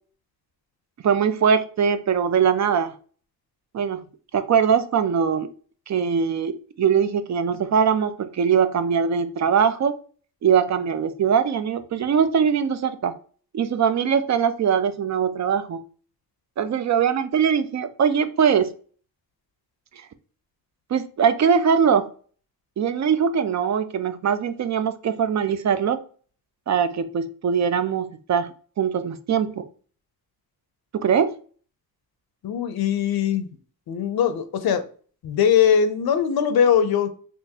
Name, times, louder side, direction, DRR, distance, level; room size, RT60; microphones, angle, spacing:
voice 1, 1.0-2.9 3.7-4.0 4.3-5.5 5.9-9.9 10.4-13.2 13.5-15.8 16.6-18.7 20.9-22.1 22.8-26.0 26.7-29.6 30.9-31.3, right 7 dB, 50° right, 11 dB, 0.4 m, -21 dB
voice 2, 32.4-33.5 33.9-34.8 35.2-37.1, left 8 dB, 80° left, 10 dB, 0.6 m, -21 dB
3.6 x 2.5 x 2.7 m, 0.43 s
cardioid pair, 85°, 36 cm